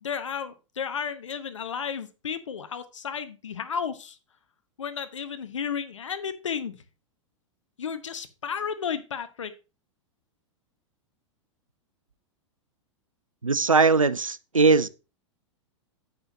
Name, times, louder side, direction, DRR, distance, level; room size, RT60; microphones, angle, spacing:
voice 1, 0.0-4.2 4.8-6.8 7.8-9.5, left 7 dB, 70° left, 1.0 m, -33 dB
voice 2, 13.4-14.9, right 4 dB, 90° right, 0.5 m, -20 dB
9.9 x 7.8 x 2.8 m
figure-of-eight pair, 100°, 17 cm